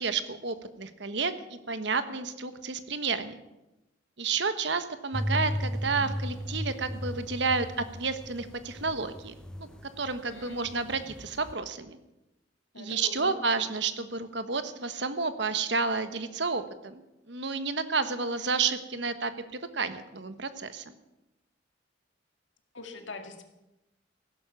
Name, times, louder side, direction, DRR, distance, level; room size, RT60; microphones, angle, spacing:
voice 1, 0.0-3.4 4.2-9.3 9.6-9.7 10.0-12.0 12.8-17.0 17.3-20.9, right 4 dB, 60° right, 11 dB, 1.2 m, -31 dB
sound 1, 5.1-10.2 10.4-11.5, equal, 5° left, 0.6 m, -35 dB
voice 2, 10.2-10.6 12.7-13.3 22.7-23.4, left 3 dB, 75° left, 5 dB, 2.2 m, -43 dB
16.0 x 11.5 x 7.1 m, 0.95 s
head